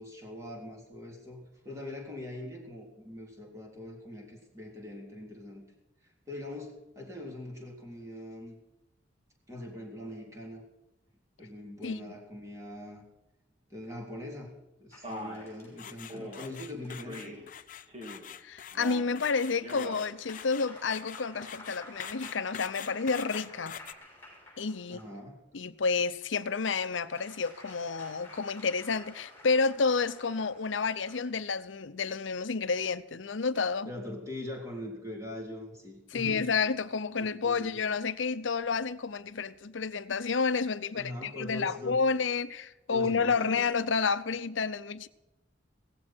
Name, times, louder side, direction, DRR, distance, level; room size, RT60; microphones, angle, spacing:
voice 1, 0.0-5.6 6.2-8.6 9.5-10.6 11.4-13.0 13.7-14.5 14.8-17.4 24.9-25.4 33.8-36.5 37.2-37.8 40.9-42.0 42.9-43.6, left 1 dB, 15° right, 3.5 m, -42 dB
voice 2, 11.8-12.2 18.4-23.7 24.6-25.0 25.5-33.9 36.1-45.1, left 4 dB, 85° left, 0.7 m, -30 dB
sound 1, 14.9-17.4 19.2-25.2 26.0-31.4, left 1 dB, 10° left, 6.0 m, -53 dB
Male speech man speaking, 15.0-15.5 16.1-16.5 17.1-17.4 17.9-18.3 18.7-19.1 19.5-20.0, equal, 35° right, 2.9 m, -42 dB
sound 2, 15.8-23.9, left 9 dB, 45° left, 0.5 m, -44 dB
16.5 x 15.0 x 4.5 m
head